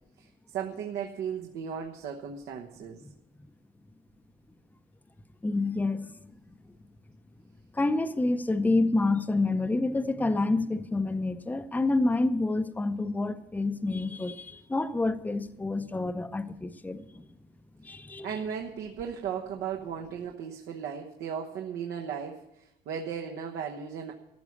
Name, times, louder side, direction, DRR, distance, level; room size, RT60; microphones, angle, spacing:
voice 1, 0.2-3.0 18.2-24.1, right 7 dB, 75° right, 1 dB, 1.2 m, -36 dB
voice 2, 5.4-6.1 7.7-17.2 17.8-18.3, left 2 dB, 10° left, 10 dB, 0.7 m, -28 dB
14.0 x 6.1 x 9.8 m, 0.87 s
cardioid pair, 110°, 17 cm